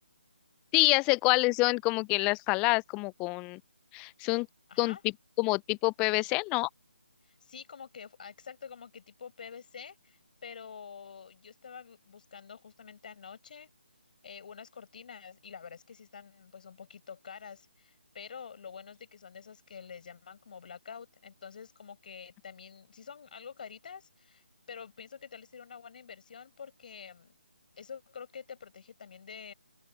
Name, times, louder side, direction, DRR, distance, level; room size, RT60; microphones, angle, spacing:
voice 1, 0.7-3.6 3.9-4.5 4.8-5.0 5.4-6.7, left 26 dB, 10° left, 0.4 m, -27 dB
voice 2, 4.7-5.0 7.2-13.7 14.2-27.3 27.8-29.5, left 6 dB, 45° left, 5.7 m, -47 dB
open air
figure-of-eight pair, 150°, 6 cm